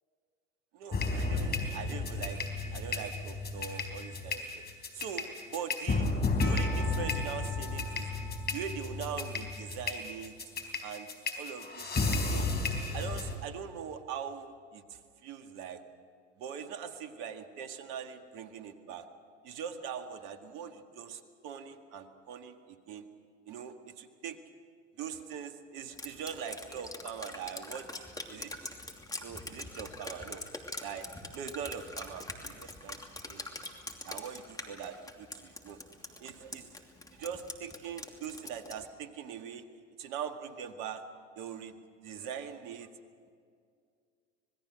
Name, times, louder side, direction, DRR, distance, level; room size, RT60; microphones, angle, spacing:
voice 1, 0.7-2.4 2.7-4.6 4.9-6.1 6.4-8.1 8.5-10.3 10.8-11.1 11.4-12.5 12.9-15.8 16.4-19.1 19.4-23.1 23.5-24.4 25.0-27.9 28.3-28.5 29.2-30.4 30.8-31.1 31.3-33.0 33.3-33.4 34.0-35.8 36.1-36.7 37.1-39.6 40.0-41.0 41.4-41.8 42.0-42.9, right 7 dB, 60° right, 7 dB, 2.0 m, -42 dB
sound 1, 0.9-13.3, left 3 dB, 25° left, 4.2 m, -32 dB
Drip, 26.0-38.9, left 2 dB, 10° left, 2.8 m, -43 dB
26.0 x 21.0 x 6.5 m, 2.2 s
hypercardioid pair, 80°, 36 cm